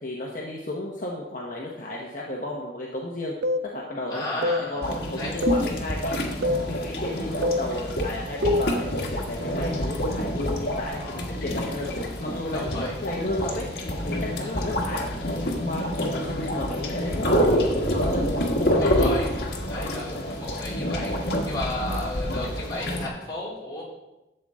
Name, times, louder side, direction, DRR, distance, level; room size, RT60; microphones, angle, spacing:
voice 1, 0.0-3.3 3.6-6.4 6.7-11.9 12.2-13.6 14.0-18.2 18.6-19.2, left 1 dB, 45° left, -3 dB, 1.2 m, -33 dB
sound 1, 3.4-3.7 4.4-4.7 5.4-5.7 6.4-6.7 7.4-7.7 8.4-8.7, left 2 dB, 75° right, 0.5 m, -24 dB
voice 2, 4.1-4.8 5.2-5.4 11.0-11.7 12.5-12.9 14.4-14.7 18.8-19.3 19.7-23.8, left 2 dB, 20° left, -8 dB, 3.8 m, -34 dB
sound 2, 4.8-23.1, equal, 60° left, 1.6 m, -27 dB
12.5 x 7.6 x 3.7 m, 1.0 s
head